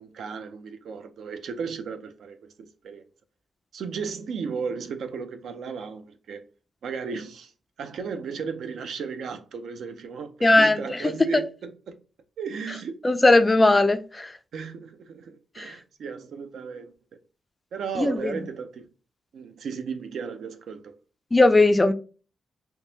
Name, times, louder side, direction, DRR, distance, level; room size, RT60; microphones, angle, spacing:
voice 1, 0.0-3.0 3.7-6.5 6.8-7.5 7.8-12.0 12.4-13.0 13.3-13.4 14.5-16.9 17.7-18.9 19.3-21.0, right 5 dB, 70° right, 0.5 m, -35 dB
voice 2, 10.4-11.0 11.3-11.4 13.0-14.3 15.6-15.7 18.0-18.3 21.3-21.9, left 2 dB, 15° left, 0.3 m, -18 dB
3.6 x 2.9 x 2.7 m
wide cardioid pair, 155°, 0 cm